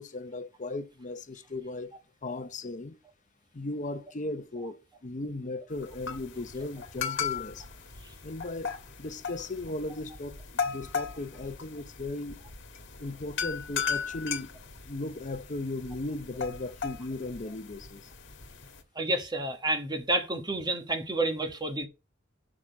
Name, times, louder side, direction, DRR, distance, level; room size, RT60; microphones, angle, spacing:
voice 1, 0.0-1.9 2.2-3.0 3.5-7.7 8.2-8.7 9.0-12.4 13.0-14.5 14.8-18.1, left 2 dB, 40° left, 0.8 m, -37 dB
sound 1, 5.7-18.8, left 6 dB, 70° left, 1.5 m, -37 dB
voice 2, 18.9-21.9, right 2 dB, 25° right, 1.3 m, -29 dB
6.4 x 6.1 x 5.2 m
head